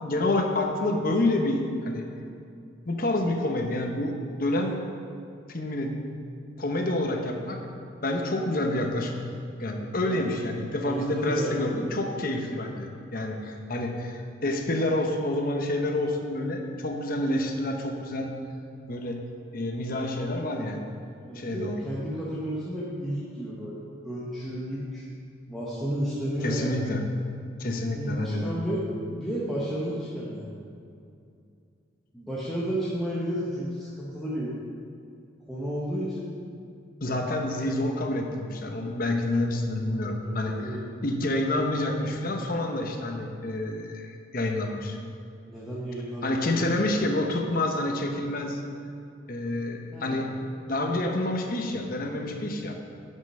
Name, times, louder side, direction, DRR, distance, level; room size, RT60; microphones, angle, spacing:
voice 1, 0.0-2.0 2.9-4.7 5.5-6.0 6.6-7.6 8.0-9.2 9.6-18.4 18.9-19.2 19.5-20.8 21.3-21.8 26.4-27.0 27.6-28.5 37.0-45.0 46.2-48.6 49.3-50.4 50.7-52.7, left 1 dB, 50° left, 3 dB, 0.9 m, -28 dB
voice 2, 10.8-12.0 21.3-25.0 25.5-26.9 28.0-30.6 32.1-34.6 35.5-36.3 37.0-37.2 40.2-40.9 45.5-46.5 46.8-46.9 49.9-50.3, equal, ahead, -9 dB, 1.2 m, -32 dB
9.7 x 5.5 x 5.5 m, 2.4 s
head